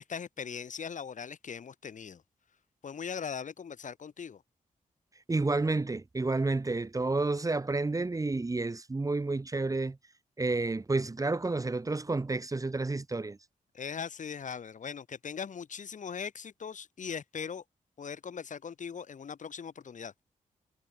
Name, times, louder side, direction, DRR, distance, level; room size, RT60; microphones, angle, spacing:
voice 1, 0.0-2.2 2.8-4.4 13.7-17.6 18.0-20.1, left 6 dB, 60° left, 4.0 m, -40 dB
voice 2, 5.3-10.0 10.4-13.4, right 3 dB, 25° right, 1.4 m, -30 dB
cardioid pair, 80°, 14 cm